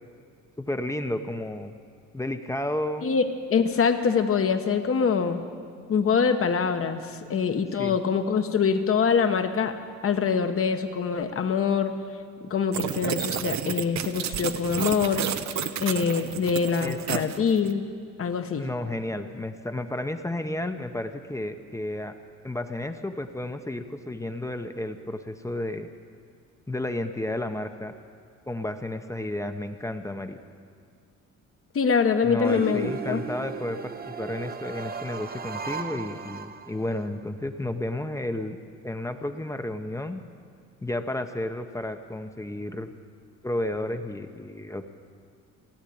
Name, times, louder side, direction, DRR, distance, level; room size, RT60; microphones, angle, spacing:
voice 1, 0.6-1.7 2.1-3.1 7.8-8.0 16.8-17.2 18.6-22.1 22.4-25.9 26.7-27.9 28.5-30.4 32.2-38.6 38.8-40.2 40.8-42.9 43.4-44.8, left 1 dB, 10° left, 7 dB, 0.8 m, -32 dB
voice 2, 3.5-5.4 5.9-7.0 7.3-9.7 10.0-11.9 12.5-15.2 15.8-17.8 18.2-18.7 31.7-33.2, left 6 dB, 45° left, 7 dB, 1.1 m, -24 dB
sound 1, 12.7-17.7, right 9 dB, 65° right, 0.7 m, -31 dB
sound 2, 32.4-37.1, right 6 dB, 30° right, 0.7 m, -36 dB
16.0 x 9.1 x 8.5 m, 2.1 s
cardioid pair, 90°, 30 cm